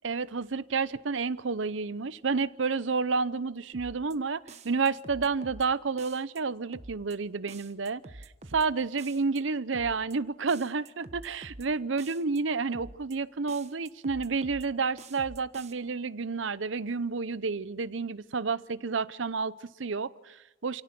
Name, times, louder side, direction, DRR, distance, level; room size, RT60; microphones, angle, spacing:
voice 1, 0.0-20.8, right 4 dB, 80° right, 16 dB, 0.8 m, -30 dB
sound 1, 3.7-4.2 4.5-5.7 6.0-6.4 6.7-7.2 7.5-8.7 9.0-9.4 9.7-10.2 10.5-11.7 12.0-12.4 12.7-13.2 13.5-14.7 15.0-15.7, right 2 dB, 35° right, 1.2 m, -47 dB
29.0 x 17.5 x 6.1 m, 1.0 s
head